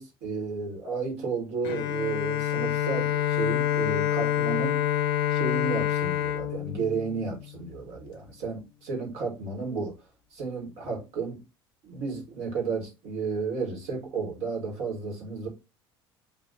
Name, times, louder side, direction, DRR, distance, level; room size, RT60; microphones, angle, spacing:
voice 1, 0.0-4.8 5.3-9.9 10.3-11.4 11.8-15.5, right 4 dB, 60° right, 1.8 m, -33 dB
Bowed string instrument, 1.6-7.7, left 11 dB, 70° left, 0.5 m, -27 dB
7.0 x 2.7 x 2.8 m
figure-of-eight pair, 60°, 13 cm